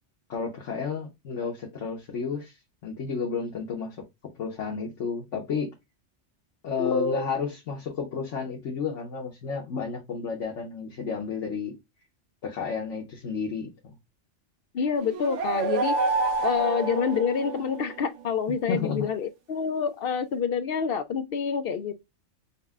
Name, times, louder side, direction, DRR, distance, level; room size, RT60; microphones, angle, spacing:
voice 1, 0.3-2.6 2.8-4.0 4.3-5.7 6.6-11.7 12.4-13.9 18.7-19.0, left 5 dB, 80° left, 1.3 m, -32 dB
voice 2, 6.8-7.2 14.7-16.0 16.4-21.9, left 6 dB, 60° left, 0.7 m, -27 dB
sound 1, 15.0-17.9, right 3 dB, 80° right, 1.1 m, -28 dB
5.5 x 2.1 x 3.5 m
omnidirectional pair, 1.2 m